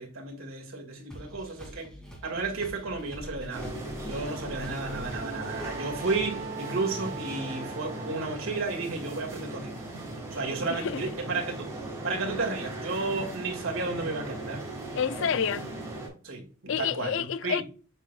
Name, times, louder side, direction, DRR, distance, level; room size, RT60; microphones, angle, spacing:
voice 1, 0.0-1.9 2.2-3.7 4.0-9.8 10.3-14.6 16.2-17.6, right 3 dB, 75° right, 1.8 m, -33 dB
sound 1, 1.1-6.5, equal, 5° left, 2.2 m, -45 dB
sound 2, 3.5-16.1, right 2 dB, 15° right, 2.9 m, -38 dB
Wind instrument woodwind instrument, 4.1-8.6, right 4 dB, 50° right, 1.3 m, -42 dB
voice 2, 10.7-11.0 15.0-15.7 16.7-17.6, left 7 dB, 65° left, 0.4 m, -29 dB
8.1 x 5.6 x 2.2 m
head